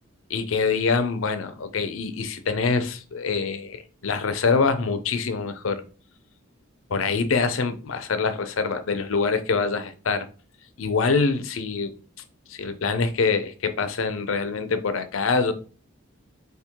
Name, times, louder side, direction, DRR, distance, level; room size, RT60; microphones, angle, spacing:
voice 1, 0.3-5.8 6.9-10.3 10.8-11.9 12.5-15.5, left 4 dB, 70° left, 0.6 m, -25 dB
3.6 x 3.2 x 4.5 m
head